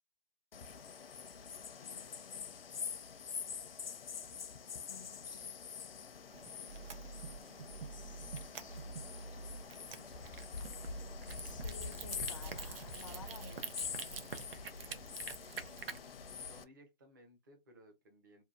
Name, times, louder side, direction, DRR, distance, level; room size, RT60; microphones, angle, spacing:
sound 1, 0.5-16.6, left 6 dB, 80° left, 0.6 m, -45 dB
voice 1, 1.7-2.6 4.9-5.4 6.7-6.9 7.9-8.9 11.4-13.7, left 5 dB, 35° left, 0.4 m, -55 dB
sound 2, 6.3-16.0, right 5 dB, 75° right, 0.7 m, -48 dB
sound 3, 6.7-7.4 7.7-9.6 10.7-12.7 13.0-13.6, right 2 dB, 45° right, 1.1 m, -49 dB
voice 2, 15.7-18.4, left 1 dB, 20° right, 0.5 m, -61 dB
2.7 x 2.2 x 2.4 m
hypercardioid pair, 160°, 29 cm